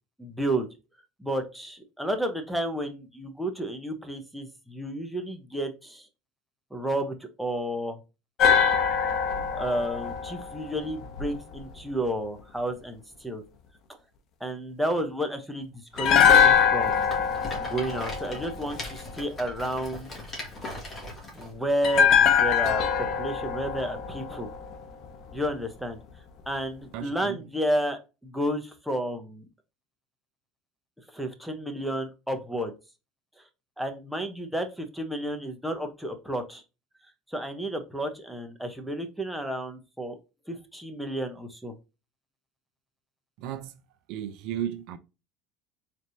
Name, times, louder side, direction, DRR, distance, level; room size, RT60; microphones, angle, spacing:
voice 1, 0.2-0.7 1.2-6.1 6.7-8.0 9.6-13.4 14.4-17.2 17.6-20.1 21.3-24.5 25.3-26.0 26.5-29.5 31.1-32.7 33.8-36.6 37.3-40.2 40.5-41.7, right 1 dB, ahead, 0.9 m, -31 dB
sound 1, 8.4-11.6 16.0-19.2 21.8-25.0 25.3-25.5, left 7 dB, 50° left, 0.9 m, -23 dB
Rattle, 16.4-21.5, left 1 dB, 25° left, 1.8 m, -40 dB
voice 2, 26.9-27.4 43.4-43.7 44.1-45.0, right 10 dB, 65° right, 0.5 m, -34 dB
4.1 x 3.3 x 2.7 m
supercardioid pair, 115°, 0 cm